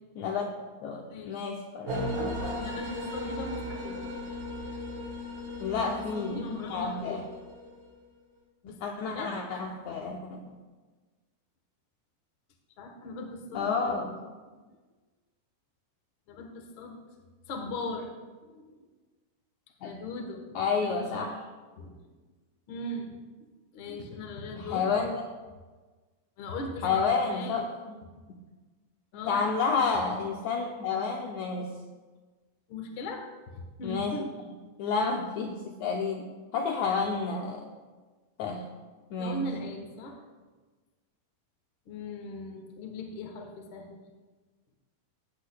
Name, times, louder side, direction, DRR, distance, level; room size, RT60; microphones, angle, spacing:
voice 1, 0.1-0.5 0.8-2.0 5.6-7.2 8.8-10.4 13.5-14.2 19.8-19.9 20.5-21.4 24.6-25.2 26.8-28.0 29.3-31.7 33.8-34.1 34.8-37.7 38.4-38.7 39.1-39.4, left 5 dB, 85° left, 1 dB, 1.6 m, -30 dB
voice 2, 1.0-1.4 2.6-4.1 5.7-7.3 7.6-7.8 8.6-8.8 9.0-9.4 12.8-14.0 16.3-17.0 17.5-18.1 18.4-18.8 19.8-20.4 20.8-21.1 21.7-21.9 22.7-23.1 23.4-24.9 26.4-27.7 29.1-29.4 32.7-33.3 33.8-34.3 36.8-37.2 39.2-40.2 41.9-44.0, left 2 dB, 65° left, 2 dB, 1.2 m, -39 dB
sound 1, 1.9-7.9, left 1 dB, 85° right, 4.8 m, -36 dB
16.5 x 8.3 x 2.3 m, 1.3 s
omnidirectional pair, 4.0 m